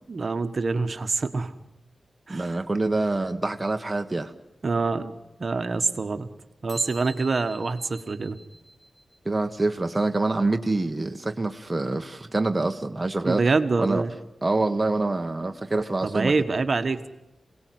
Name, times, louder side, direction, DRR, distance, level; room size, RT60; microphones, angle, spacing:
voice 1, 0.1-1.6 2.3-2.6 4.6-5.1 5.4-6.3 6.6-8.4 13.2-14.1 16.0-17.1, right 3 dB, 50° right, 9 dB, 1.4 m, -25 dB
voice 2, 2.3-4.3 9.2-13.4 13.8-14.0 14.4-16.3, right 2 dB, 20° right, 5 dB, 1.1 m, -26 dB
sound 1, 6.7-9.3, right 1 dB, ahead, 2.6 m, -46 dB
27.5 x 18.0 x 9.4 m, 0.96 s
wide cardioid pair, 110°, 0 cm